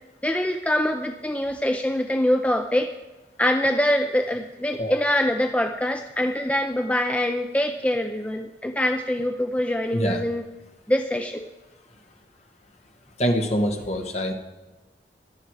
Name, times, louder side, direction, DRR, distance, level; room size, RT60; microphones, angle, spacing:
voice 1, 0.2-2.9 3.4-10.4 10.9-11.5, left 1 dB, 10° left, 6 dB, 0.5 m, -24 dB
voice 2, 13.2-14.3, equal, 40° left, 3 dB, 1.8 m, -24 dB
17.0 x 11.5 x 4.9 m, 1.1 s
head